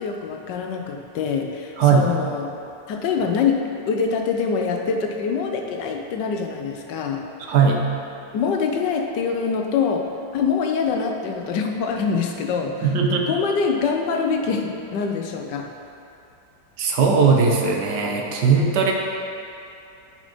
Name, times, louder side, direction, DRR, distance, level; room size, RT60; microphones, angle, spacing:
voice 1, 0.0-2.5 2.9-7.2 8.3-15.7, left 5 dB, 80° left, 3 dB, 1.4 m, -24 dB
voice 2, 1.8-2.1 7.5-7.9 12.8-13.3 16.8-18.9, right 5 dB, 70° right, 1 dB, 1.5 m, -18 dB
9.3 x 5.0 x 5.2 m, 2.7 s
omnidirectional pair, 1.9 m